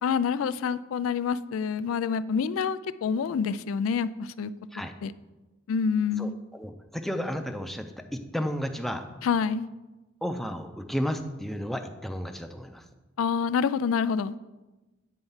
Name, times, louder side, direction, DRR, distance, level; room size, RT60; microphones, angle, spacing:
voice 1, 0.0-4.5 5.0-5.1 5.7-6.4 9.2-9.7 13.2-14.3, left 6 dB, 90° left, 15 dB, 0.3 m, -27 dB
voice 2, 6.2-9.1 10.2-12.9, equal, ahead, 6 dB, 0.5 m, -33 dB
9.2 x 4.4 x 5.6 m, 1.1 s
head